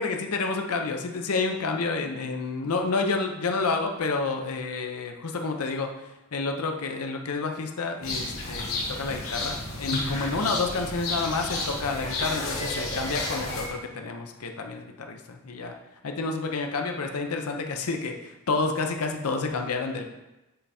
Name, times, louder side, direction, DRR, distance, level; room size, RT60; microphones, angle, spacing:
voice 1, 0.0-15.7 16.0-20.0, left 3 dB, 85° left, 4 dB, 0.6 m, -29 dB
sound 1, 8.0-13.7, left 2 dB, 60° left, 1.6 m, -31 dB
7.7 x 3.4 x 4.2 m, 1.0 s
head